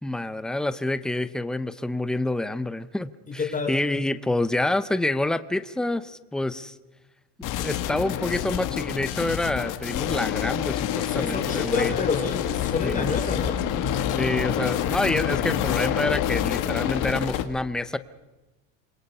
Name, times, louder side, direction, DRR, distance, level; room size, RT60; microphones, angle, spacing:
voice 1, 0.0-6.8 7.4-11.9 12.8-13.2 14.2-18.0, left 2 dB, ahead, 13 dB, 0.6 m, -27 dB
voice 2, 3.3-3.8 11.1-14.0, left 4 dB, 20° left, 3 dB, 3.5 m, -29 dB
sound 1, 7.4-17.4, left 11 dB, 50° left, 2.1 m, -27 dB
27.5 x 22.5 x 5.6 m, 1.1 s
cardioid pair, 140°, 40 cm